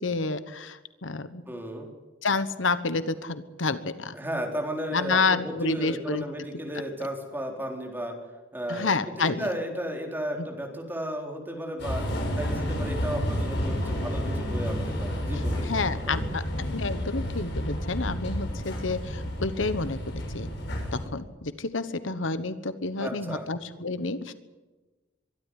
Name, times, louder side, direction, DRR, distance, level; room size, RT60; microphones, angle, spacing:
voice 1, 0.0-1.4 2.2-4.1 4.9-6.2 8.7-9.5 10.4-10.5 15.3-20.5 20.9-24.3, left 3 dB, 85° left, 13 dB, 1.2 m, -29 dB
voice 2, 1.5-1.9 4.1-8.1 8.5-12.0 12.4-16.4 23.0-23.5, equal, 10° right, 2 dB, 4.0 m, -34 dB
sound 1, 11.8-21.1, equal, 65° left, 6.7 m, -30 dB
23.5 x 12.5 x 10.0 m, 1.2 s
head